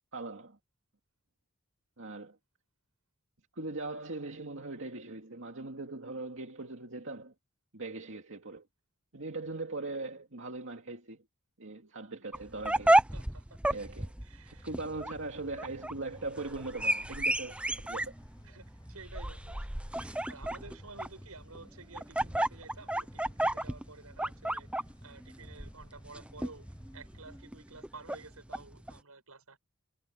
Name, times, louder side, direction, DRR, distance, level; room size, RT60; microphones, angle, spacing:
voice 1, 0.1-0.6 2.0-2.4 3.5-7.3 7.7-8.7 9.1-11.3 11.6-13.0 13.7-14.1 14.5-18.1, right 2 dB, 60° right, 2.4 m, -40 dB
sound 1, 12.3-29.0, right 1 dB, 5° right, 0.7 m, -32 dB
voice 2, 13.1-13.6 14.2-14.7 18.4-19.7 19.9-26.7 26.9-29.6, right 3 dB, 85° right, 7.4 m, -51 dB
sound 2, 14.6-27.4, equal, 20° left, 6.6 m, -55 dB
head